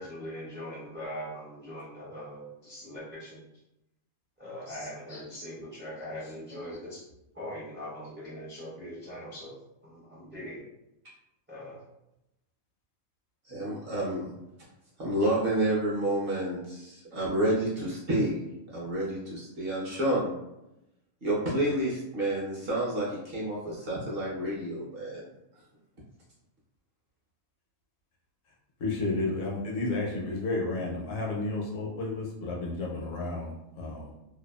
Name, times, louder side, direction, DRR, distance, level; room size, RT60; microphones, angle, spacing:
voice 1, 0.0-3.4 4.4-7.1 7.3-9.5 9.8-10.6 11.5-11.8, equal, 20° right, -7 dB, 0.3 m, -41 dB
voice 2, 13.5-14.3 15.0-18.4 18.7-20.3 21.2-25.2, right 1 dB, 50° right, -6 dB, 0.8 m, -29 dB
voice 3, 28.8-34.1, left 2 dB, 70° left, -2 dB, 0.9 m, -32 dB
2.7 x 2.2 x 2.2 m, 0.89 s
omnidirectional pair, 1.5 m